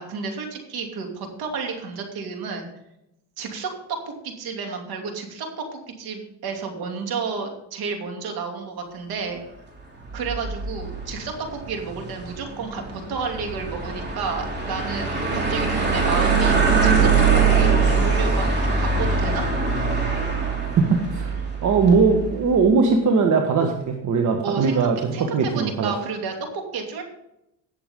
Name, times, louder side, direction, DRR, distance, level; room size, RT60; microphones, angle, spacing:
voice 1, 0.0-2.7 3.4-9.4 10.1-17.3 17.5-19.5 24.4-27.0, right 5 dB, 60° right, 3 dB, 2.9 m, -31 dB
sound 1, 10.1-22.3, right 4 dB, 25° right, 2.9 m, -22 dB
voice 2, 20.6-25.9, right 4 dB, 45° right, 3 dB, 1.4 m, -20 dB
18.0 x 6.9 x 3.7 m, 0.85 s
cardioid pair, 120°, 42 cm